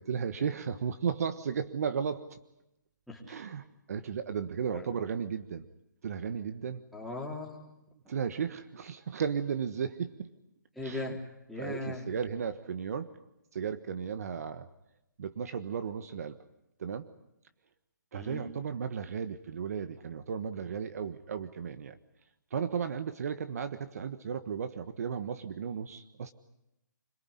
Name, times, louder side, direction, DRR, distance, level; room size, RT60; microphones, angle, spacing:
voice 1, 0.0-2.4 3.3-5.7 6.0-6.8 8.1-10.3 10.8-11.2 11.6-13.1 13.5-14.7 15.2-16.4 16.8-17.0 18.1-22.0 22.5-26.3, right 7 dB, 50° right, 10 dB, 1.4 m, -35 dB
voice 2, 6.9-7.6 10.8-11.2 11.5-12.1 18.1-18.5, left 2 dB, ahead, -4 dB, 3.8 m, -38 dB
26.0 x 19.0 x 9.9 m, 0.88 s
hypercardioid pair, 155°, 10 cm